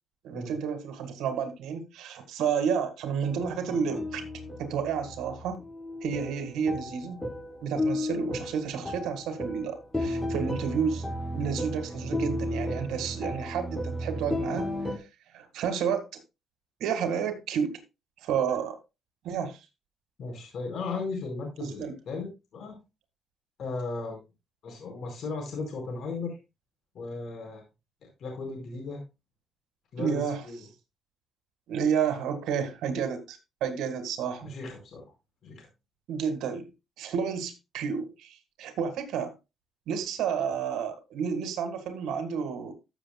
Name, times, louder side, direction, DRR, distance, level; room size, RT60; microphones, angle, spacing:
voice 1, 0.2-4.2 4.6-5.6 6.0-7.2 7.6-11.0 11.3-14.7 14.9-15.0 15.3-16.0 16.8-17.8 18.2-18.8 19.2-19.6 21.6-21.9 30.0-30.4 31.7-34.5 36.1-36.6 37.0-39.3 39.9-42.7, right 7 dB, 85° right, 1.8 m, -30 dB
sound 1, 3.2-15.0, left 1 dB, 10° left, 1.4 m, -34 dB
voice 2, 20.2-22.8 23.6-24.2 24.6-26.4 26.9-27.6 28.2-29.0 29.9-30.6 34.4-35.0 35.4-35.7, left 3 dB, 65° left, 4.8 m, -36 dB
14.5 x 7.0 x 2.3 m
cardioid pair, 90°, 0 cm